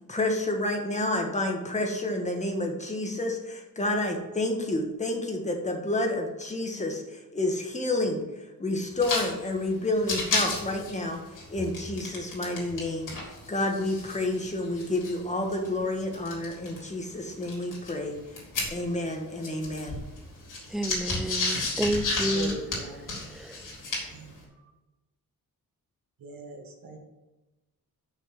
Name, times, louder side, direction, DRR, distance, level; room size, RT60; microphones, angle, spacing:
voice 1, 0.1-8.2 8.6-11.2 11.5-18.1 18.7-20.0, left 2 dB, 20° left, 1.4 m, -29 dB
sound 1, 8.9-9.3 9.6-9.7 10.0-12.8 13.1-16.8 17.4-19.1 19.4-24.2, left 3 dB, 60° left, 3.3 m, -32 dB
voice 2, 20.7-22.6 23.3-23.6, equal, ahead, 0.3 m, -30 dB
voice 3, 22.2-23.2 24.1-24.6 26.2-27.0, right 3 dB, 70° right, 1.5 m, -40 dB
6.5 x 6.0 x 5.9 m
wide cardioid pair, 145°, 35 cm